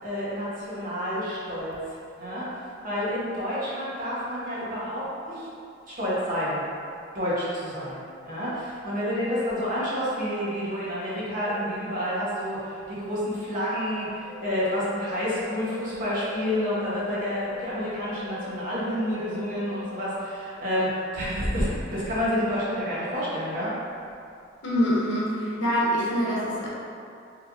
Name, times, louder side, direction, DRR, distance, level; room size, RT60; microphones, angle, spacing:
voice 1, 0.0-5.5 5.9-6.6 7.1-23.7, equal, 40° right, -9 dB, 1.2 m, -29 dB
sound 1, 14.2-20.2, left 14 dB, 75° right, 1.0 m, -42 dB
voice 2, 24.6-26.7, equal, 60° left, -7 dB, 1.0 m, -25 dB
4.6 x 3.7 x 2.7 m, 2.5 s
head